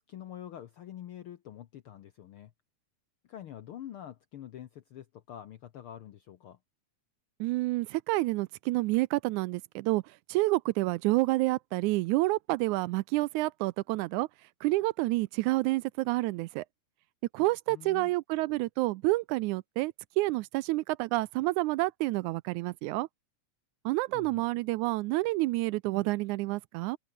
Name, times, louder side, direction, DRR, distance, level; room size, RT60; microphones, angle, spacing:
voice 1, 0.0-2.5 3.3-6.6 17.7-18.1 24.1-24.5, left 11 dB, 70° left, 1.3 m, -46 dB
voice 2, 7.4-10.0 10.3-14.3 14.6-16.7 17.3-23.1 23.9-27.0, right 20 dB, 80° right, 1.9 m, -29 dB
omnidirectional pair, 3.6 m